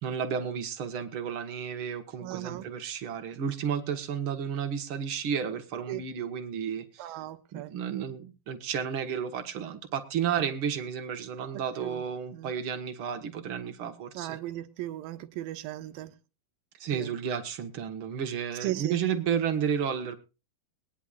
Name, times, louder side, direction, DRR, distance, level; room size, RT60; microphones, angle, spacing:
voice 1, 0.0-7.1 7.5-14.4 16.8-20.2, right 7 dB, 50° right, 1.7 m, -32 dB
voice 2, 2.2-2.7 5.9-6.1 7.0-7.7 11.8-12.1 12.3-12.5 14.1-16.1 16.9-17.1 18.6-19.0, right 14 dB, 80° right, 2.7 m, -37 dB
21.5 x 10.0 x 2.4 m
omnidirectional pair, 4.1 m